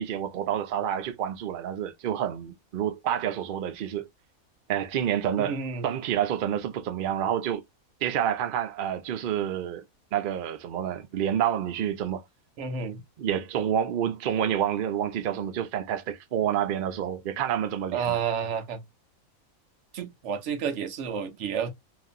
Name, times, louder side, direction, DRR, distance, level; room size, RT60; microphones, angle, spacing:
voice 1, 0.0-4.1 4.7-5.6 5.8-7.6 8.0-9.8 10.1-12.2 13.2-18.2, right 10 dB, 90° right, 0.4 m, -28 dB
voice 2, 5.4-5.9 12.6-13.0 17.9-18.8 19.9-21.7, right 7 dB, 65° right, 0.9 m, -30 dB
2.9 x 2.5 x 2.3 m
omnidirectional pair, 1.5 m